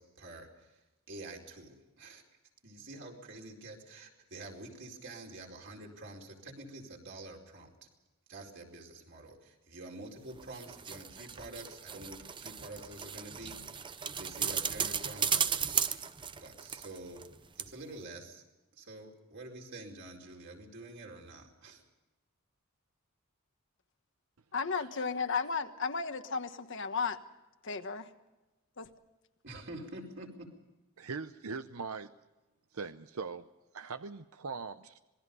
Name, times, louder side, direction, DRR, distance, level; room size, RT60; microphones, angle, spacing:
voice 1, 0.0-2.2 2.6-7.9 8.3-16.0 16.3-17.3 17.5-18.4 18.7-21.8 29.4-30.5, right 2 dB, 55° right, 0 dB, 4.6 m, -48 dB
sound 1, 10.3-17.3 17.6-17.7, right 7 dB, 20° right, 0.7 m, -35 dB
voice 2, 24.5-27.2 27.6-28.1 28.8-28.9, left 5 dB, 60° left, 8 dB, 1.4 m, -34 dB
voice 3, 31.0-32.1 32.7-33.5 33.7-35.0, right 4 dB, 80° right, 11 dB, 0.7 m, -41 dB
26.5 x 20.5 x 5.4 m, 1.1 s
head